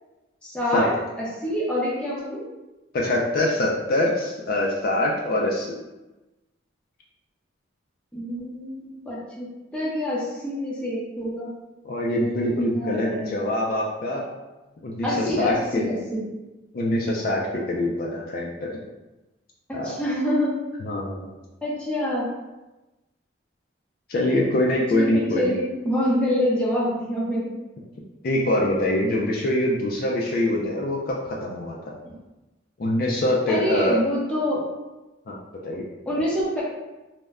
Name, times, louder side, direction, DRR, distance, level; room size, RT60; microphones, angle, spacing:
voice 1, 0.4-0.9 1.2-2.4 8.1-11.5 12.2-13.3 15.0-16.2 19.7-20.6 21.6-22.3 24.9-27.5 33.5-34.7 36.1-36.6, equal, 5° left, -7 dB, 0.6 m, -26 dB
voice 2, 2.9-5.7 11.8-14.3 14.8-15.8 16.7-18.7 19.7-19.9 20.8-21.3 24.1-25.6 28.2-31.9 32.8-34.0 35.3-35.4 35.6-35.9, left 1 dB, 50° left, -2 dB, 0.3 m, -24 dB
2.1 x 2.1 x 3.5 m, 1.1 s
head